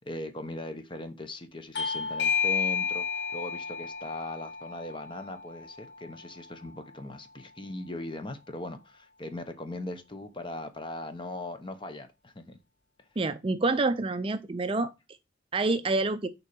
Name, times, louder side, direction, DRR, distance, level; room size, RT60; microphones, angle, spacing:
voice 1, 0.0-12.6 13.0-13.1, left 1 dB, 25° left, 1.0 m, -39 dB
Bell / Doorbell, 1.8-6.9, left 6 dB, 60° left, 0.8 m, -32 dB
voice 2, 13.2-14.9 15.5-16.3, right 3 dB, 30° right, 0.5 m, -27 dB
6.9 x 4.5 x 5.1 m
head